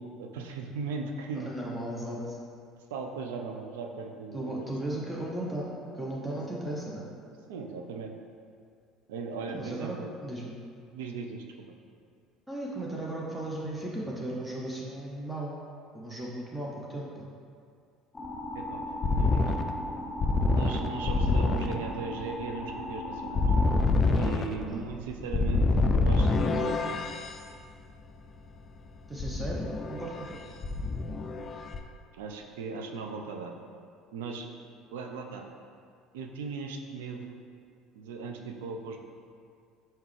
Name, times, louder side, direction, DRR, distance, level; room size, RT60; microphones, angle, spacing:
voice 1, 0.0-1.5 2.9-4.7 6.3-6.4 7.5-8.2 9.1-10.1 10.9-11.4 18.5-19.8 20.5-23.5 24.1-27.1 32.1-33.5 34.1-34.5 34.9-35.5 36.1-37.4 37.9-39.0, right 4 dB, 80° right, 3 dB, 0.4 m, -38 dB
voice 2, 1.3-2.4 4.3-5.7 5.9-7.0 9.5-10.5 12.5-15.5 15.9-17.2 24.5-24.9 29.1-30.4, right 1 dB, 10° right, -4 dB, 0.7 m, -36 dB
sound 1, 18.1-23.8, left 1 dB, 15° left, 0.9 m, -37 dB
sound 2, 18.2-27.3 29.2-30.3 30.6-31.8, left 3 dB, 40° left, 0.3 m, -26 dB
4.4 x 3.6 x 3.2 m, 2.3 s
hypercardioid pair, 70°, 0 cm